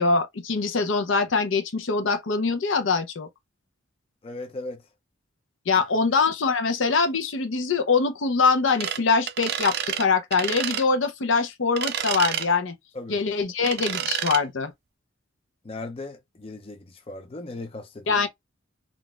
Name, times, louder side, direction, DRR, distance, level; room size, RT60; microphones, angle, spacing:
voice 1, 0.0-3.3 5.7-12.7 13.1-14.7 18.1-18.3, left 4 dB, 75° left, 0.6 m, -23 dB
voice 2, 4.2-4.8 5.9-6.1 12.9-13.2 15.6-18.1, left 2 dB, 30° left, 0.4 m, -37 dB
sound 1, 8.8-9.0 9.3-10.1 10.3-10.8 11.8-12.5 13.6-14.4, right 9 dB, 50° right, 0.4 m, -29 dB
3.8 x 2.4 x 2.3 m
head